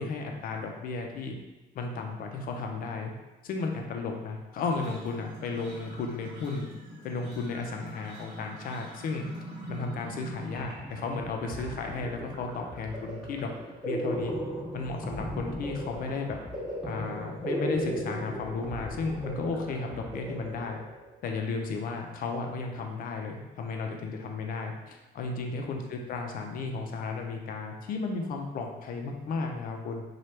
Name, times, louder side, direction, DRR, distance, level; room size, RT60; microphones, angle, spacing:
voice 1, 0.0-1.3 1.7-3.1 3.4-6.7 7.0-9.2 9.7-13.5 13.8-14.3 14.7-16.4 16.8-20.8 21.2-30.0, left 4 dB, 55° left, 3 dB, 0.5 m, -34 dB
sound 1, 4.6-10.7, equal, 90° right, 0.9 m, -44 dB
sound 2, 10.5-21.2, equal, 5° right, 0.9 m, -37 dB
2.9 x 2.3 x 3.2 m, 1.1 s
cardioid pair, 110°, 17 cm